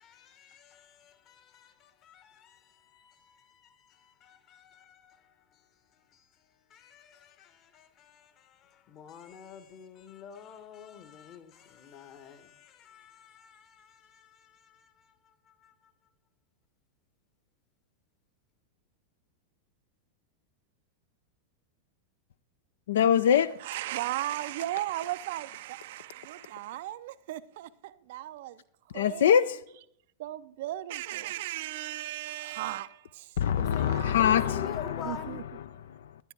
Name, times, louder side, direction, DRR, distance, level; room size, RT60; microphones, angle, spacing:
voice 1, 0.0-15.9 33.6-35.4, left 7 dB, 35° left, 1.2 m, -48 dB
voice 2, 22.9-23.6 28.9-29.6 33.4-35.1 35.5-36.3, left 9 dB, 60° left, 0.4 m, -24 dB
voice 3, 23.6-28.6 28.9-29.3 30.2-33.4 33.8-34.1 35.0-35.4, right 14 dB, 55° right, 0.4 m, -36 dB
11.5 x 10.5 x 3.6 m
figure-of-eight pair, 90°, 0 cm